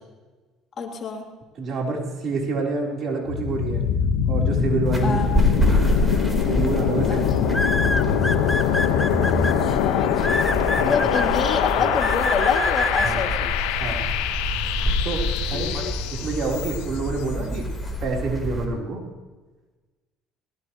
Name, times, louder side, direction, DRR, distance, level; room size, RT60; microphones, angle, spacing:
voice 1, 0.8-1.3 5.0-5.4 7.1-7.6 9.3-10.5 10.8-13.5 15.5-15.9, left 5 dB, 45° left, 0 dB, 3.5 m, -27 dB
voice 2, 1.6-3.8 4.2-5.2 5.5-5.9 6.4-7.8 10.8-11.1 11.8-11.9 13.0-13.3 13.8-14.1 15.0-17.7 18.0-19.0, right 3 dB, 50° right, -1 dB, 4.3 m, -28 dB
sound 1, 3.3-17.1, left 9 dB, 85° left, 1.4 m, -24 dB
sound 2, 4.8-18.6, left 1 dB, 10° right, 4.4 m, -27 dB
sound 3, 6.0-6.3 7.5-9.5 10.2-11.3 12.0-13.1, left 1 dB, 5° left, 1.1 m, -25 dB
21.0 x 18.5 x 3.3 m, 1.3 s
supercardioid pair, 85°, 0 cm